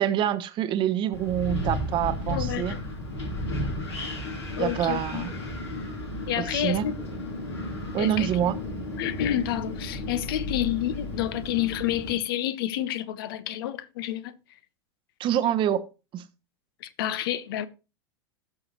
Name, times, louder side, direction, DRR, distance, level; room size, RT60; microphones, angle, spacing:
voice 1, 0.0-2.8 4.6-5.3 6.4-6.8 7.9-8.6 15.2-15.9 16.1-16.2, right 10 dB, 35° right, 1.0 m, -26 dB
Wind, 1.1-12.1, left 1 dB, 80° left, 3.5 m, -33 dB
voice 2, 2.3-2.8 4.6-5.3 6.3-7.0 8.0-8.3 9.0-14.3 16.8-17.7, left 12 dB, 60° left, 0.8 m, -29 dB
17.0 x 6.3 x 3.0 m
figure-of-eight pair, 85°, 14 cm